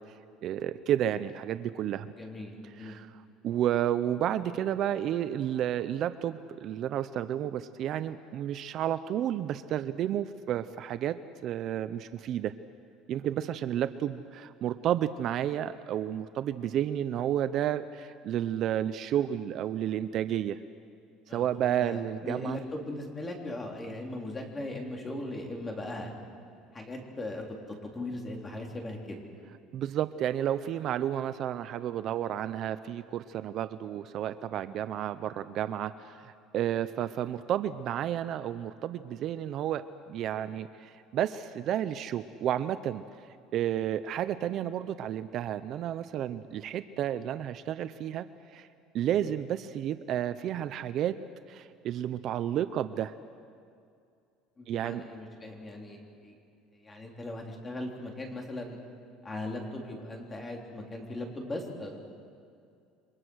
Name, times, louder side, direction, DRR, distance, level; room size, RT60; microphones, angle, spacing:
voice 1, 0.4-2.1 2.8-12.5 13.1-20.6 21.3-22.6 29.7-39.8 40.1-43.0 43.5-48.3 48.5-48.7 48.9-51.1 51.5-53.2 54.7-55.0, right 11 dB, 45° right, 12 dB, 0.7 m, -31 dB
voice 2, 2.1-3.0 21.3-26.1 26.7-27.4 27.8-29.2 49.2-49.3 54.6-56.3 56.7-58.8 59.2-62.0, left 1 dB, 15° left, 1 dB, 3.7 m, -39 dB
29.0 x 25.0 x 6.4 m, 2.4 s
cardioid pair, 150°, 0 cm